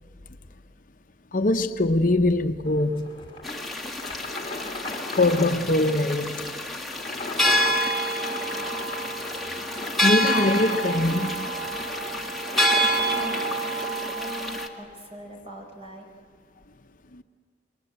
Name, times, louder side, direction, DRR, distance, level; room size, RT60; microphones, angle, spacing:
voice 1, 1.3-3.1 5.2-6.5 10.0-11.5 17.1-17.2, left 2 dB, 50° left, 0.8 m, -22 dB
sound 1, 2.6-13.9, left 2 dB, 30° left, 2.2 m, -38 dB
sound 2, 3.4-14.7, equal, ahead, 1.9 m, -27 dB
voice 2, 12.9-16.1, left 1 dB, 30° right, 4.5 m, -42 dB
28.0 x 22.0 x 8.1 m
head